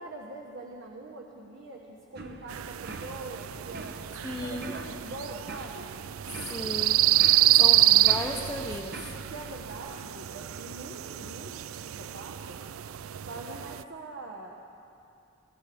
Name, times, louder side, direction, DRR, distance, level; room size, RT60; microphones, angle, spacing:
voice 1, 0.0-4.0 4.4-5.9 7.4-7.7 9.1-12.6 13.3-14.6, right 2 dB, 65° right, -1 dB, 1.2 m, -43 dB
sound 1, 2.2-9.8, right 2 dB, 50° right, 0.9 m, -45 dB
sound 2, 2.5-13.8, right 13 dB, 85° right, 0.4 m, -27 dB
voice 2, 4.2-4.8 6.4-7.0 7.5-9.1, left 1 dB, 10° left, -2 dB, 0.7 m, -35 dB
24.0 x 15.0 x 3.5 m, 2.6 s
head